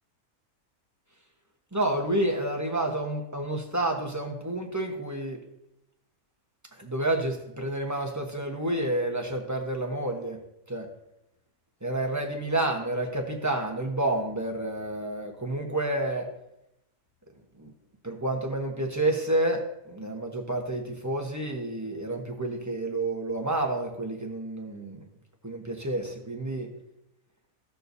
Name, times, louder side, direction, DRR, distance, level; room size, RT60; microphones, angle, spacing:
voice 1, 1.7-5.4 6.8-10.4 10.7-10.9 11.8-16.3 17.6-17.7 18.0-25.1 25.4-26.7, right 1 dB, 15° right, 1 dB, 1.0 m, -29 dB
15.5 x 6.7 x 2.7 m, 0.84 s
omnidirectional pair, 1.7 m